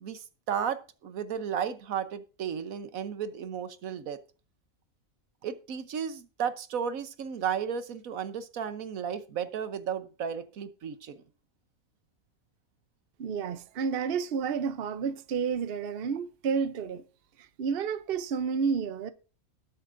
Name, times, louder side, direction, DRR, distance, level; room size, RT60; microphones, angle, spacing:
voice 1, 0.0-4.2 5.4-11.2, right 7 dB, 80° right, 1.3 m, -34 dB
voice 2, 13.2-17.0 17.6-19.1, right 6 dB, 50° right, 0.9 m, -30 dB
19.5 x 7.7 x 2.6 m
omnidirectional pair, 1.4 m